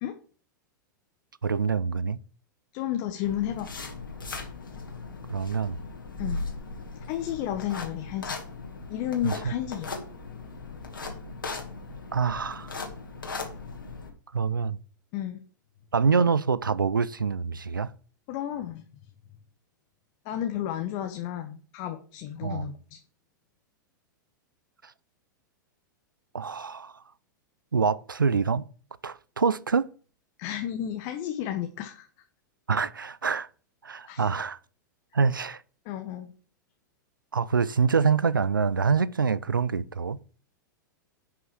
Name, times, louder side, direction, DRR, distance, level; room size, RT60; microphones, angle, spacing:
voice 1, 1.4-2.2 5.3-5.8 9.2-9.5 12.1-12.7 14.3-14.8 15.9-17.9 22.4-22.7 26.3-26.9 27.7-28.7 29.0-29.9 32.7-33.5 33.8-34.6 35.1-35.6 37.3-40.2, right 5 dB, 90° right, 0.5 m, -25 dB
voice 2, 2.7-3.8 6.2-6.4 7.1-8.4 8.9-9.9 15.1-15.4 18.3-18.8 20.2-23.0 30.4-32.1 34.1-34.3 35.8-36.3, left 11 dB, 45° left, 1.2 m, -32 dB
sound 1, 3.2-14.1, left 3 dB, 85° left, 2.3 m, -38 dB
10.5 x 5.8 x 4.8 m
figure-of-eight pair, 100°, 11 cm